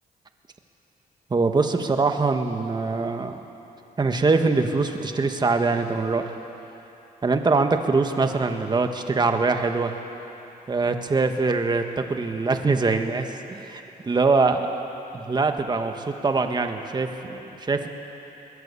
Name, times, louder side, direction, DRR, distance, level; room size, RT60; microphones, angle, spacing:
voice 1, 1.3-3.4 4.0-6.2 7.2-9.9 10.7-14.8 15.1-17.9, right 3 dB, 25° right, 5 dB, 1.6 m, -23 dB
21.5 x 21.0 x 8.5 m, 3.0 s
cardioid pair, 125°, 16 cm